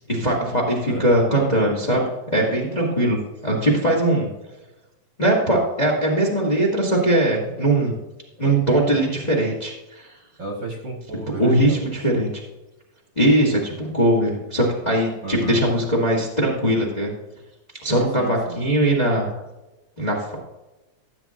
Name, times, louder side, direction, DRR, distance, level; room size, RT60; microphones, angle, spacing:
voice 1, 0.1-4.3 5.2-7.9 8.4-10.1 11.4-12.3 13.1-17.1 17.8-19.3 20.0-20.3, right 1 dB, 15° left, -2 dB, 1.5 m, -20 dB
voice 2, 10.4-12.2 15.2-15.6 18.2-18.6, right 3 dB, 45° right, -1 dB, 1.7 m, -33 dB
15.0 x 8.6 x 2.6 m, 1.0 s
omnidirectional pair, 3.5 m